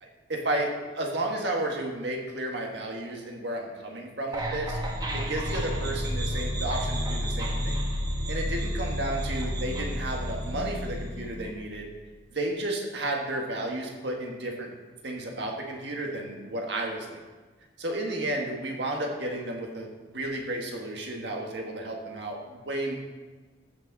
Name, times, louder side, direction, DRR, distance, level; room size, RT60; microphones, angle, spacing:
voice 1, 0.0-4.8 5.1-7.8 8.3-11.9 12.3-14.7 15.0-17.2 17.8-23.0, right 1 dB, 65° right, 1 dB, 1.6 m, -32 dB
sound 1, 4.3-11.5, equal, 20° right, 1.2 m, -31 dB
14.0 x 6.1 x 4.0 m, 1.3 s
head